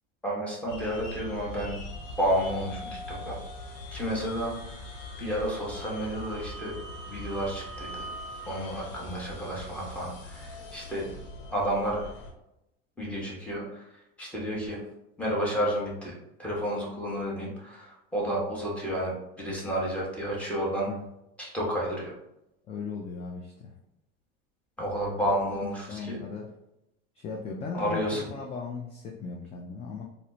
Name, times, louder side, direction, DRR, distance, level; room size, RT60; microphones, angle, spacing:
voice 1, 0.2-1.8 2.2-3.4 3.9-4.8 5.2-6.7 7.1-8.1 8.5-11.1 11.5-12.1 13.0-14.8 15.2-20.9 21.4-22.1 24.8-26.2 27.7-28.2, equal, 5° left, -5 dB, 1.1 m, -31 dB
sound 1, 0.7-12.3, left 1 dB, 80° left, 1.0 m, -41 dB
voice 2, 22.7-23.8 25.2-25.3 25.6-26.5 27.1-30.0, left 4 dB, 20° left, 0 dB, 0.4 m, -37 dB
4.1 x 2.1 x 2.7 m, 0.87 s
supercardioid pair, 115°, 29 cm